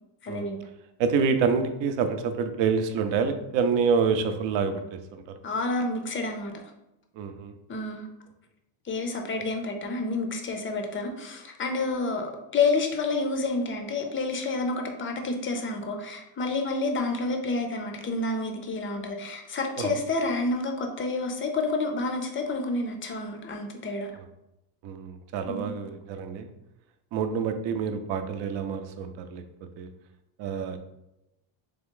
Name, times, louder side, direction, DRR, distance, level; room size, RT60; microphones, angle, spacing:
voice 1, 0.2-0.6 5.4-6.6 7.7-8.1 8.9-24.1 25.5-25.7, left 3 dB, 30° left, 4 dB, 0.4 m, -29 dB
voice 2, 1.0-5.2 7.2-7.5 19.8-19.9 24.8-26.5 27.1-29.4 29.8-29.9 30.4-30.8, right 5 dB, 70° right, 8 dB, 0.6 m, -27 dB
3.6 x 3.4 x 3.7 m, 0.91 s
cardioid pair, 170°, 46 cm